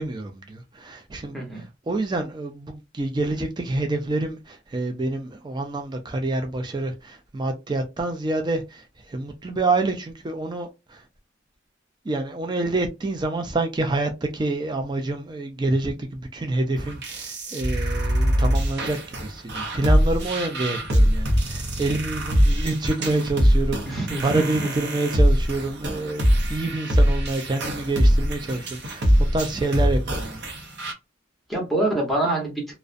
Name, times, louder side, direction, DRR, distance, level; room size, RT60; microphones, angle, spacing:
voice 1, 0.0-11.0 12.1-29.1 29.3-30.5, right 2 dB, 20° right, 0.4 m, -27 dB
sound 1, 16.8-30.9, equal, 60° right, 0.6 m, -22 dB
voice 2, 23.9-24.7 31.5-32.5, right 2 dB, ahead, 0.8 m, -25 dB
2.4 x 2.1 x 2.4 m
head